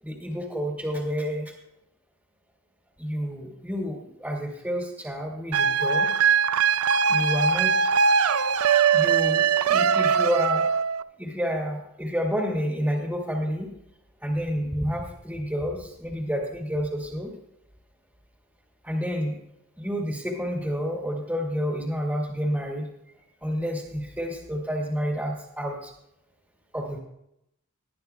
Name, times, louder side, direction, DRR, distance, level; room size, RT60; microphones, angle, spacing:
voice 1, 0.0-1.5 3.0-6.1 7.1-7.9 8.9-10.7 11.2-13.7 14.2-17.3 18.8-19.4 19.8-22.9 23.2-25.9 26.7-27.0, equal, 5° right, -3 dB, 2.2 m, -29 dB
sound 1, 5.5-11.0, right 6 dB, 85° right, 0.4 m, -21 dB
20.0 x 11.5 x 2.3 m, 0.82 s
head